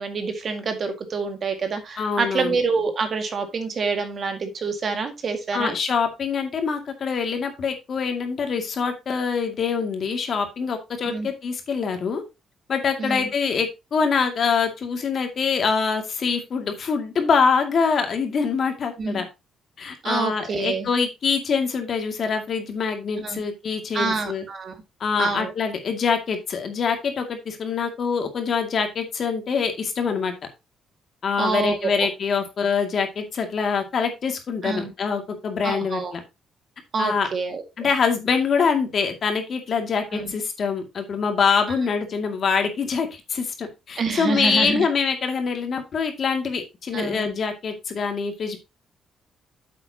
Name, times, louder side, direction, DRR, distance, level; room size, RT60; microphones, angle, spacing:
voice 1, 0.0-5.7 11.0-11.3 13.0-13.3 19.0-19.2 20.0-20.9 23.2-23.4 23.9-24.8 25.2-25.5 31.4-32.1 34.6-34.9 35.6-36.1 36.9-37.9 40.1-40.3 44.0-44.8 46.9-47.3, right 4 dB, 45° right, 7 dB, 1.9 m, -27 dB
voice 2, 2.0-2.6 5.5-12.2 12.7-19.3 19.8-24.4 25.0-30.3 31.2-36.2 37.0-37.3 37.8-48.6, left 5 dB, 45° left, 5 dB, 2.2 m, -24 dB
9.1 x 7.6 x 2.9 m, 0.25 s
cardioid pair, 130°, 0 cm